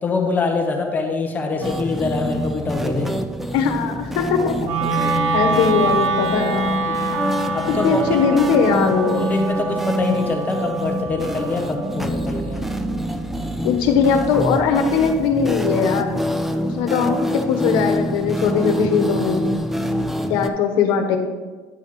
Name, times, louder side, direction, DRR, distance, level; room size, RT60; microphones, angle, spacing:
voice 1, 0.0-3.1 7.5-8.0 9.1-12.6, left 3 dB, 20° left, 2 dB, 0.8 m, -24 dB
sound 1, 1.6-20.5, equal, 5° right, 0.3 m, -26 dB
voice 2, 3.5-6.8 7.8-9.3 13.6-16.2 16.6-19.4 20.3-21.2, left 6 dB, 80° left, 4 dB, 1.1 m, -20 dB
Wind instrument woodwind instrument, 4.6-14.8, right 3 dB, 70° right, 1.0 m, -26 dB
9.7 x 3.5 x 6.3 m, 1.3 s
cardioid pair, 160°, 8 cm